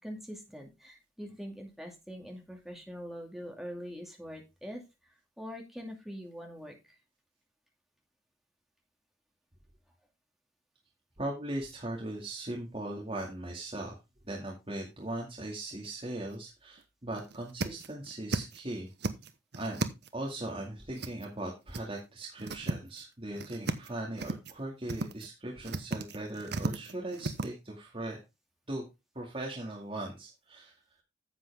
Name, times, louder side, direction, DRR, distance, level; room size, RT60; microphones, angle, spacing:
voice 1, 0.0-4.8 5.4-6.8, equal, ahead, 1 dB, 2.4 m, -43 dB
voice 2, 11.2-13.9 14.3-18.9 19.6-19.8 20.1-28.2 28.7-28.8 29.1-30.7, right 1 dB, 30° right, -1 dB, 2.3 m, -39 dB
Blade on wood, 15.4-15.9 16.3-16.4 16.8-16.9 17.2-18.6 18.9-20.3 21.0-21.5 21.7-21.8 22.2-23.0 23.3-23.9 24.2-24.6 24.9-25.3 25.6-27.5, right 2 dB, 60° right, 1.0 m, -35 dB
9.7 x 7.8 x 3.5 m, 0.24 s
head